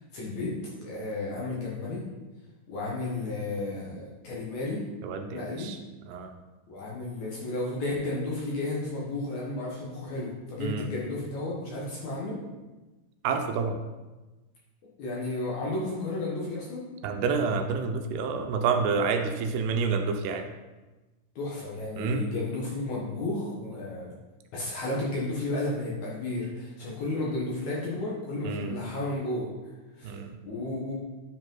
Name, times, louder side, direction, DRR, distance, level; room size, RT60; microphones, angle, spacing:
voice 1, 0.1-0.6 0.8-2.0 2.7-4.8 5.3-5.7 6.7-12.4 15.0-16.9 21.4-24.1 24.5-29.5 30.0-30.1 30.4-31.0, left 2 dB, 60° left, -5 dB, 2.1 m, -33 dB
voice 2, 5.0-5.8 6.1-6.3 10.6-10.9 13.2-13.8 17.0-20.5 22.0-22.3 28.4-28.8 30.0-30.3, right 5 dB, 85° right, 6 dB, 2.7 m, -28 dB
9.9 x 5.1 x 3.8 m, 1.1 s
omnidirectional pair, 4.6 m